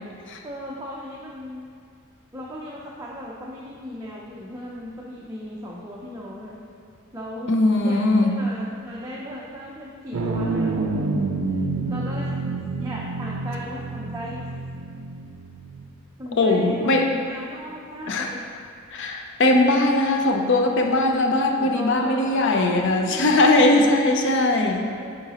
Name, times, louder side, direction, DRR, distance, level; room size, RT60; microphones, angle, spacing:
voice 1, 0.4-1.7 2.3-6.5 7.1-7.6 7.8-11.2 11.5-11.6 11.8-12.3 12.8-14.5 16.2-16.9 17.2-18.4 21.5-23.4 24.4-25.2, equal, 15° right, -5 dB, 0.5 m, -37 dB
voice 2, 7.5-8.3 16.4-17.1 18.1-18.3 18.9-24.9, left 2 dB, 55° left, 3 dB, 0.5 m, -20 dB
sound 1, 10.1-15.9, right 3 dB, 75° right, 0.5 m, -28 dB
8.7 x 3.8 x 2.9 m, 2.3 s
head